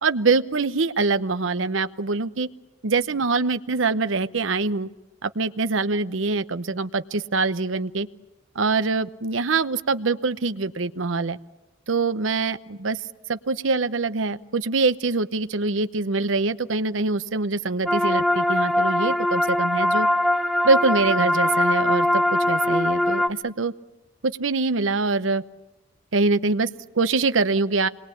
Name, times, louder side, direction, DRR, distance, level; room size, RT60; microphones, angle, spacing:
voice 1, 0.0-2.5 2.8-4.9 5.2-8.1 8.5-11.4 11.9-13.0 13.3-20.1 20.6-23.7 24.2-25.4 26.1-26.7 26.9-27.9, right 3 dB, 90° right, 12 dB, 0.9 m, -24 dB
sound 1, 17.9-23.3, left 1 dB, ahead, 0.9 m, -21 dB
27.5 x 22.0 x 8.4 m, 0.98 s
head